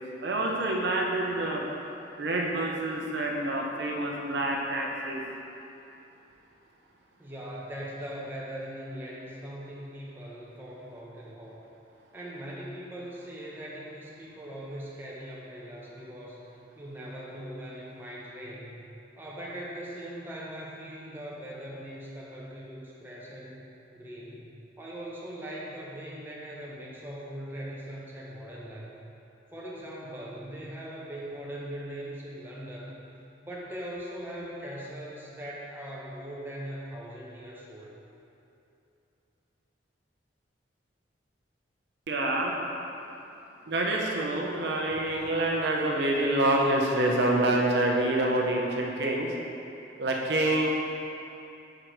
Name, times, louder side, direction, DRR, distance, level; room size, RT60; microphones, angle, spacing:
voice 1, 0.0-1.6 2.2-5.2 42.1-42.5 43.7-49.3 50.0-50.7, right 1 dB, 65° right, -1 dB, 0.6 m, -27 dB
voice 2, 7.2-11.6 12.1-16.4 16.8-18.8 19.1-23.6 23.9-24.5 24.8-28.9 29.5-32.9 33.4-37.9, equal, 10° right, -6 dB, 0.7 m, -40 dB
5.0 x 4.6 x 4.5 m, 2.8 s
head